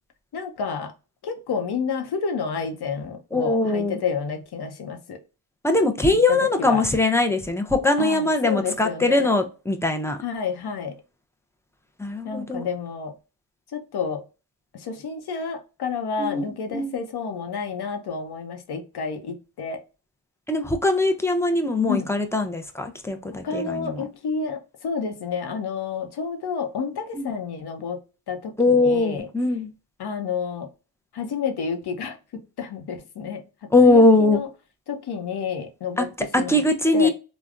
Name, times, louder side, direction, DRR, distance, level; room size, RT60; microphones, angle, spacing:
voice 1, 0.3-0.9 1.2-5.2 6.3-6.8 8.0-9.3 10.2-10.9 12.2-13.1 13.7-14.2 14.7-19.8 21.9-22.1 23.4-28.0 28.3-29.3 30.0-30.7 31.1-32.2 32.6-33.4 33.8-34.5 34.9-36.6 36.9-37.1, left 5 dB, 70° left, 0.8 m, -30 dB
voice 2, 3.3-4.0 5.6-10.2 12.0-12.6 16.2-17.0 20.5-24.0 27.1-27.3 28.6-29.7 33.7-34.4 36.0-36.1 36.3-37.1, left 2 dB, 5° left, 0.5 m, -21 dB
3.4 x 2.2 x 2.4 m
cardioid pair, 60°, 41 cm